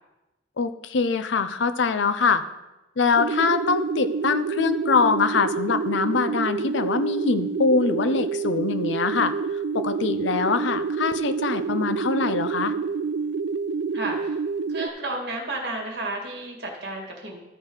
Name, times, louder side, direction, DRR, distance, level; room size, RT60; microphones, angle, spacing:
voice 1, 0.6-2.4 3.0-9.3 9.7-12.7, left 4 dB, 80° left, 11 dB, 0.5 m, -23 dB
sound 1, 3.2-14.9, right 5 dB, 80° right, 0.4 m, -28 dB
voice 2, 13.9-14.4 14.7-17.4, right 2 dB, 60° right, 0 dB, 2.1 m, -32 dB
13.0 x 4.5 x 4.8 m, 1.0 s
head